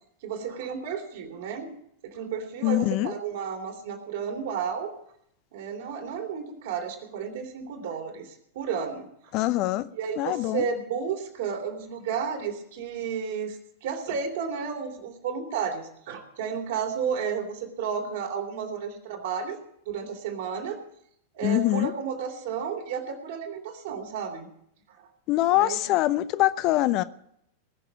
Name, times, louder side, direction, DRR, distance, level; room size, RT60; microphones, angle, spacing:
voice 1, 0.2-1.7 2.0-4.9 5.5-9.1 10.0-19.6 19.8-20.8 21.3-24.5 24.9-25.1 25.5-25.8, right 6 dB, 55° right, 3.2 m, -32 dB
voice 2, 2.6-3.1 9.3-9.8 10.2-10.7 21.4-21.9 25.3-27.0, left 16 dB, 40° left, 0.6 m, -24 dB
20.0 x 6.8 x 8.5 m
figure-of-eight pair, 90°, 0 cm